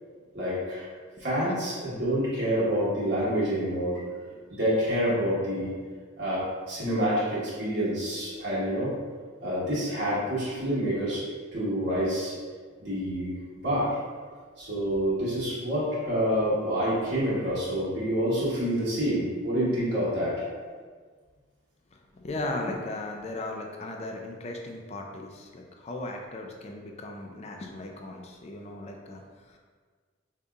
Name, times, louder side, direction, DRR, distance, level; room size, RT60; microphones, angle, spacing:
voice 1, 0.3-0.9 1.2-4.0 4.2-5.7 6.2-8.9 9.4-11.2 11.5-12.3 12.8-13.4 13.6-14.0 14.6-20.4, equal, 55° right, -9 dB, 1.4 m, -27 dB
voice 2, 21.9-29.6, left 2 dB, 35° left, 2 dB, 0.4 m, -37 dB
5.1 x 2.7 x 2.3 m, 1.5 s
head